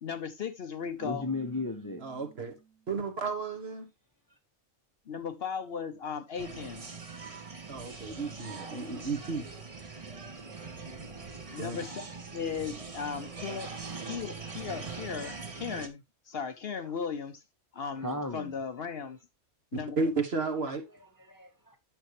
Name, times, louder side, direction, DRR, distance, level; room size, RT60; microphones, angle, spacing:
voice 1, 0.0-1.3 5.1-6.8 11.5-12.1 12.3-13.7 14.1-17.4 17.7-19.2 19.7-20.0, left 6 dB, 55° left, 0.9 m, -36 dB
voice 2, 1.0-2.0 11.3-11.8 18.0-18.5 20.9-21.8, left 2 dB, 20° left, 0.8 m, -37 dB
Keyboard (musical), 1.0-3.0, right 6 dB, 85° right, 2.6 m, -52 dB
voice 3, 2.0-2.5 2.9-3.9 7.7-9.5 11.6-11.8 19.7-20.9, right 4 dB, 55° right, 1.6 m, -33 dB
sound 1, 6.4-15.9, right 4 dB, 30° right, 1.0 m, -42 dB
9.0 x 6.6 x 3.0 m
omnidirectional pair, 1.3 m